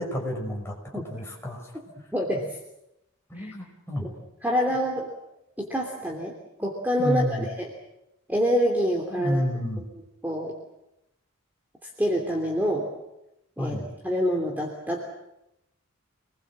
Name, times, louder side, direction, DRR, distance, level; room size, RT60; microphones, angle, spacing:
voice 1, 0.0-0.7 1.1-1.7 3.3-4.0 7.0-7.5 9.2-9.8 13.6-13.9, equal, 10° left, -1 dB, 5.8 m, -29 dB
voice 2, 2.1-2.6 3.3-3.5 4.0-4.1 4.4-5.1 5.6-6.3 6.6-7.7 8.3-9.4 9.9-10.5 11.8-12.9 13.6-15.0, equal, 10° right, 0 dB, 3.1 m, -26 dB
28.0 x 20.5 x 7.6 m, 0.87 s
head